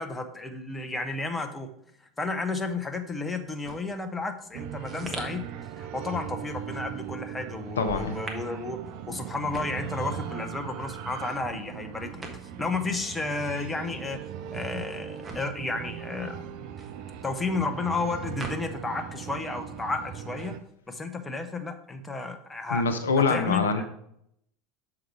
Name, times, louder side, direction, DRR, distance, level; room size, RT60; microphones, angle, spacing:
voice 1, 0.0-1.7 2.2-5.4 5.8-8.8 9.1-12.3 12.6-14.2 14.5-16.4 17.2-20.6 20.9-22.8 23.3-23.9, left 3 dB, 15° left, 6 dB, 0.8 m, -32 dB
sound 1, 3.4-19.2 19.4-21.0, right 2 dB, 20° right, 1.3 m, -45 dB
sound 2, 4.5-20.6, right 9 dB, 55° right, 0.4 m, -39 dB
voice 2, 7.8-8.2 22.7-23.9, left 4 dB, 75° left, 7 dB, 0.6 m, -25 dB
6.4 x 4.8 x 4.7 m, 0.73 s
figure-of-eight pair, 75°, 0 cm